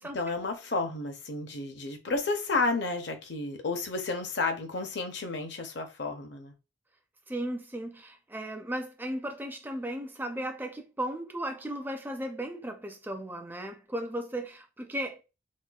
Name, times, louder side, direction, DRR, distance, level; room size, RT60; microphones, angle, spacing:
voice 1, 0.0-6.5, left 3 dB, 55° left, 0.6 m, -31 dB
voice 2, 7.3-15.2, right 1 dB, 10° right, 0.4 m, -36 dB
4.2 x 2.2 x 2.3 m
head